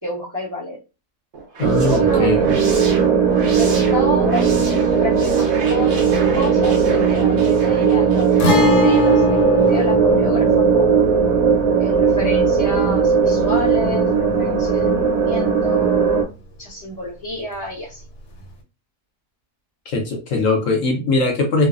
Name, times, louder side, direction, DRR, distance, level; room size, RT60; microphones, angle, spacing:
voice 1, 0.0-0.8 1.8-2.3 3.6-4.5 5.0-11.2 11.8-16.3 16.6-18.0, left 1 dB, 20° right, -6 dB, 0.5 m, -29 dB
sound 1, 1.3-9.4, right 3 dB, 60° right, 1.0 m, -34 dB
voice 2, 1.6-2.6 19.9-21.7, left 3 dB, 65° left, 2 dB, 0.9 m, -20 dB
sound 2, 1.6-16.2, right 6 dB, 85° right, 1.2 m, -17 dB
Guitar, 8.4-16.0 16.3-16.4 18.4-18.5, left 6 dB, 85° left, 1.3 m, -25 dB
3.1 x 2.0 x 2.3 m, 0.29 s
omnidirectional pair, 1.7 m